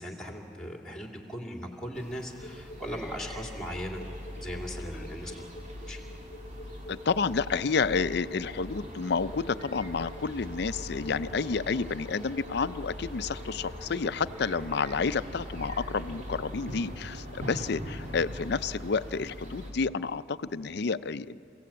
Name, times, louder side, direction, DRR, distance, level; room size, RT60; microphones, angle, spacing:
voice 1, 0.0-4.0 4.3-5.4 5.8-6.0 17.8-18.0, equal, 5° left, 0 dB, 2.6 m, -38 dB
sound 1, 1.9-19.7, equal, 40° right, 3.1 m, -42 dB
sound 2, 2.4-15.1, left 1 dB, 30° left, 1.5 m, -48 dB
voice 2, 6.9-21.4, left 5 dB, 60° left, 14 dB, 0.5 m, -30 dB
29.0 x 16.0 x 8.5 m, 2.7 s
head